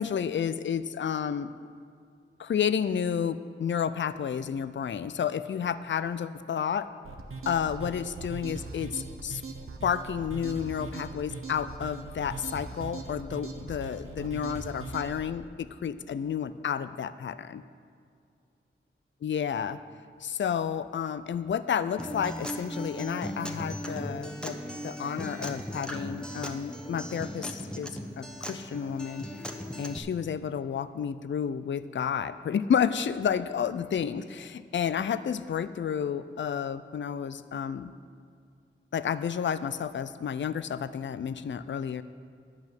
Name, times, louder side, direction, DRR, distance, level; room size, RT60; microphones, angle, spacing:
voice 1, 0.0-1.5 2.4-6.9 7.5-9.4 9.8-17.6 19.2-19.8 20.2-29.3 29.8-37.9 38.9-42.0, left 8 dB, 65° left, 14 dB, 0.4 m, -31 dB
sound 1, 7.0-15.2, right 3 dB, 85° right, 0.9 m, -40 dB
Acoustic guitar, 22.0-30.0, equal, 5° left, 1.0 m, -37 dB
10.5 x 6.1 x 8.7 m, 2.3 s
wide cardioid pair, 65°, 21 cm